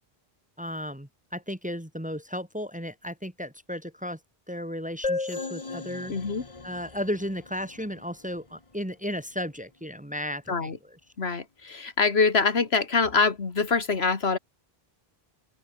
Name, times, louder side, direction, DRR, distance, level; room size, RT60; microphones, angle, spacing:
voice 1, 0.6-4.2 4.5-6.1 6.6-10.7, equal, 5° right, 1.6 m, -34 dB
sound 1, 5.0-8.6, left 3 dB, 30° left, 1.5 m, -35 dB
voice 2, 6.1-6.4 10.5-10.8 11.2-14.4, left 4 dB, 80° left, 2.1 m, -24 dB
open air
omnidirectional pair, 1.0 m